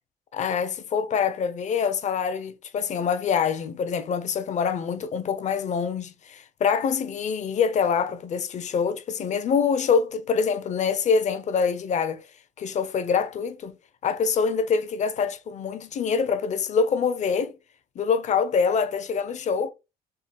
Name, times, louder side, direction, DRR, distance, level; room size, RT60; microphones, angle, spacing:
voice 1, 0.3-12.2 12.6-13.7 14.0-17.5 18.0-19.7, left 6 dB, 45° left, 0.7 m, -25 dB
3.8 x 2.5 x 4.1 m
cardioid pair, 110°, 17 cm